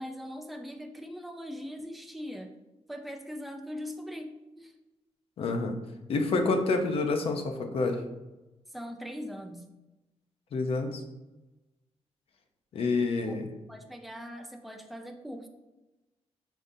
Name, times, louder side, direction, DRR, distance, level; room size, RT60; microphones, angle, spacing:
voice 1, 0.0-2.5 2.9-4.3 4.6-4.7 8.7-9.6 13.2-13.4 13.7-15.5, equal, ahead, 4 dB, 0.4 m, -40 dB
voice 2, 5.4-5.8 6.1-8.0 10.5-11.0 12.7-13.5, left 3 dB, 60° left, 5 dB, 0.6 m, -28 dB
5.2 x 3.8 x 2.6 m, 1.0 s
wide cardioid pair, 170°, 11 cm